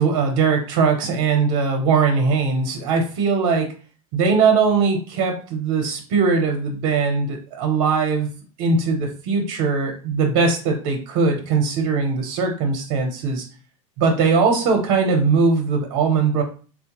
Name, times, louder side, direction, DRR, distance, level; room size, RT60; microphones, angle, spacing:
voice 1, 0.0-3.7 4.1-8.3 8.6-13.4 14.0-16.4, right 5 dB, 55° right, 2 dB, 0.8 m, -20 dB
4.3 x 2.1 x 2.9 m, 0.38 s
supercardioid pair, 145°, 18 cm